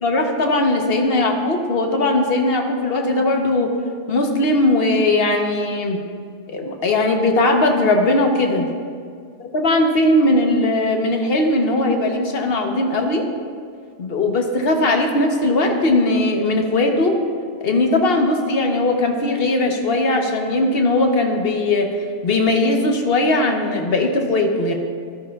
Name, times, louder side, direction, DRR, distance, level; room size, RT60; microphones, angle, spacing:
voice 1, 0.0-3.7 4.1-6.0 6.5-8.7 9.5-13.3 14.0-17.2 17.6-21.9 22.2-24.7, left 2 dB, 55° left, 3 dB, 1.1 m, -19 dB
14.0 x 12.0 x 2.3 m, 2.1 s
omnidirectional pair, 1.2 m